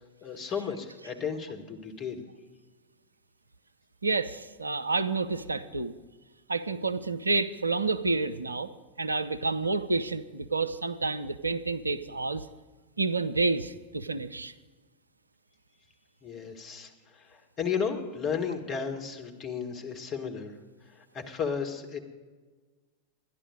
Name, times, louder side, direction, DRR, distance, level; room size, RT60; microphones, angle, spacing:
voice 1, 0.2-2.2 16.2-20.5 20.9-22.0, left 6 dB, 25° left, 4 dB, 1.6 m, -34 dB
voice 2, 4.0-5.9 6.5-8.7 9.0-12.5 13.0-14.5, right 3 dB, 80° right, 10 dB, 0.5 m, -29 dB
12.5 x 11.0 x 5.2 m, 1.4 s
figure-of-eight pair, 90°, 0 cm